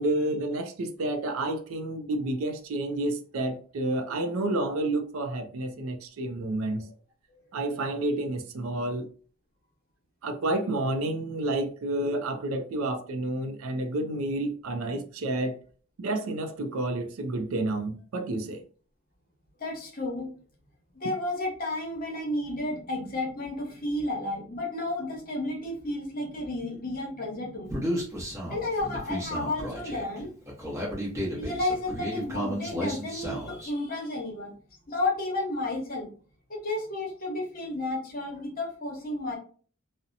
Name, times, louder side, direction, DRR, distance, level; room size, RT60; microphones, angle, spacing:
voice 1, 0.0-6.9 7.5-9.1 10.2-15.6 16.0-18.6, right 2 dB, 75° right, 0.4 m, -30 dB
voice 2, 19.6-20.3 20.9-27.8 28.5-30.3 31.3-34.5 34.9-36.1 36.5-39.4, left 2 dB, 40° left, 0.8 m, -32 dB
Human voice, 27.7-33.7, equal, 15° right, 0.8 m, -33 dB
2.7 x 2.1 x 2.5 m
head